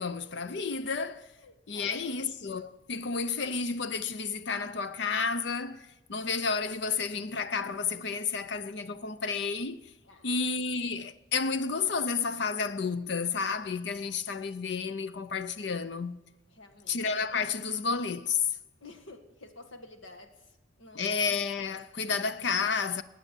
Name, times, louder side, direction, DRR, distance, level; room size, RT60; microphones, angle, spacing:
voice 1, 0.0-1.3 1.7-9.9 10.2-16.2 16.9-18.5 20.9-23.0, left 5 dB, 60° left, 0.6 m, -31 dB
voice 2, 1.4-2.2 10.0-10.4 16.5-17.0 18.8-21.2, left 2 dB, 85° left, 1.8 m, -51 dB
19.5 x 8.9 x 8.3 m
head